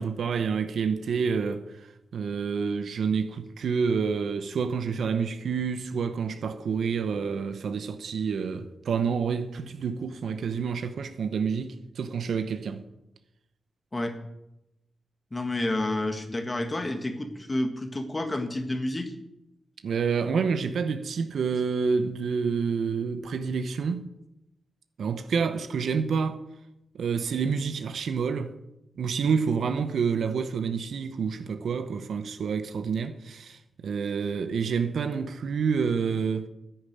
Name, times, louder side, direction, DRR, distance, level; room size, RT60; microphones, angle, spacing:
voice 1, 0.0-1.9 2.1-12.8 19.8-24.1 25.0-26.4 26.9-28.5 29.0-36.5, right 6 dB, 75° right, 0.9 m, -28 dB
voice 2, 15.3-19.1, left 1 dB, 20° left, 1.6 m, -29 dB
10.5 x 10.5 x 8.9 m
wide cardioid pair, 155°, 0 cm